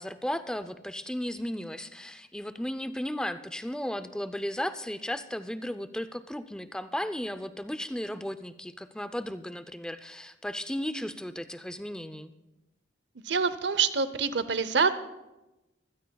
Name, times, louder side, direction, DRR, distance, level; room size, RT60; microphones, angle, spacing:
voice 1, 0.0-12.3, equal, 5° left, 10 dB, 0.5 m, -35 dB
voice 2, 13.2-14.9, right 5 dB, 65° right, 13 dB, 0.7 m, -26 dB
24.5 x 16.0 x 2.3 m, 0.99 s
head